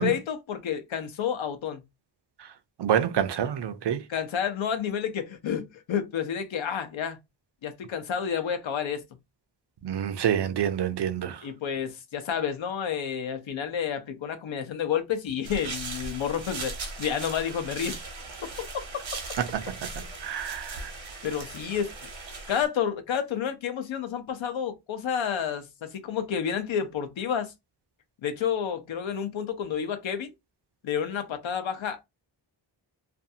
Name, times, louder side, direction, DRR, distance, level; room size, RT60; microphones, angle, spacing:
voice 1, 0.0-1.8 4.1-7.2 7.6-9.0 11.4-16.7 17.0-18.0 18.6-18.9 21.2-21.9 22.5-27.5 28.2-30.3 30.8-32.0, left 8 dB, 85° left, 0.7 m, -30 dB
voice 2, 2.8-4.0 9.8-11.4 19.5-19.7 20.2-20.9, right 9 dB, 65° right, 0.5 m, -27 dB
sound 1, 15.4-22.7, right 3 dB, 80° right, 0.9 m, -38 dB
2.5 x 2.3 x 2.7 m
wide cardioid pair, 90°, 45 cm